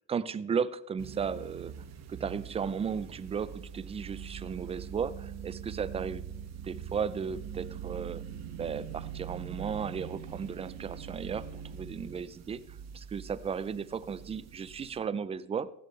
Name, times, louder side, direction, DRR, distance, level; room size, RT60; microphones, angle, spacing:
voice 1, 0.1-1.7 2.1-6.3 6.6-8.2 8.6-12.6 12.9-15.7, right 6 dB, 20° right, 16 dB, 0.5 m, -35 dB
sound 1, 1.0-15.0, right 8 dB, 55° right, 1.8 m, -43 dB
15.5 x 11.0 x 3.3 m, 0.82 s
cardioid pair, 120°, 32 cm